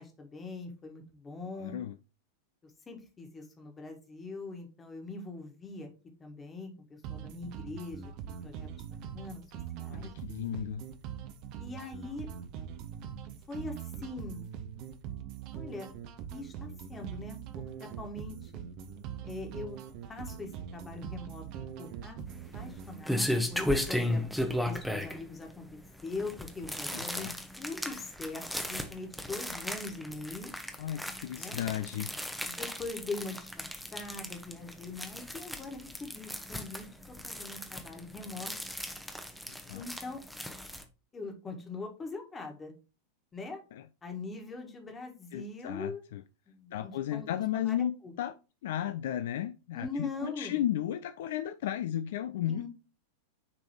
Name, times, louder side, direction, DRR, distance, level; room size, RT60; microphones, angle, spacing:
voice 1, 0.0-1.8 2.6-5.9 6.2-9.4 9.8-10.1 11.6-12.3 13.5-14.4 15.5-15.9 16.3-17.4 17.8-18.6 19.2-19.8 20.1-21.4 21.8-22.2 22.5-24.2 24.6-25.7 26.0-30.5 31.4-31.6 32.4-33.7 33.9-38.5 39.7-40.2 41.1-42.7 43.3-43.6 44.0-46.0 46.5-47.3 47.5-48.1 49.7-50.6 52.5-52.7, left 3 dB, 15° left, 1.5 m, -42 dB
voice 2, 1.5-1.9 9.9-10.8 26.9-27.4 30.8-32.1 39.5-39.8 43.7-43.9 45.3-46.2 46.7-47.9 48.2-48.4 48.6-52.7, left 11 dB, 55° left, 0.3 m, -34 dB
sound 1, 7.0-23.0, right 9 dB, 40° right, 0.7 m, -42 dB
sound 2, 22.3-40.8, left 1 dB, ahead, 0.8 m, -36 dB
9.7 x 3.4 x 3.0 m
figure-of-eight pair, 90°, 0 cm